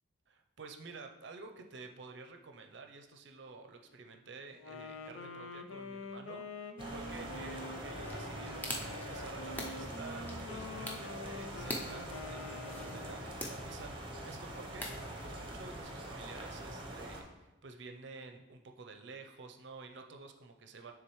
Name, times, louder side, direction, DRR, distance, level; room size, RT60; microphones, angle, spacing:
voice 1, 0.3-20.9, right 4 dB, 55° right, 4 dB, 0.5 m, -51 dB
Wind instrument woodwind instrument, 4.5-13.5, left 3 dB, 70° left, 0.5 m, -46 dB
sound 1, 6.8-17.2, right 1 dB, 25° right, 0.8 m, -44 dB
sound 2, 8.0-15.8, left 1 dB, 10° left, 0.5 m, -46 dB
9.4 x 3.6 x 3.1 m, 1.0 s
head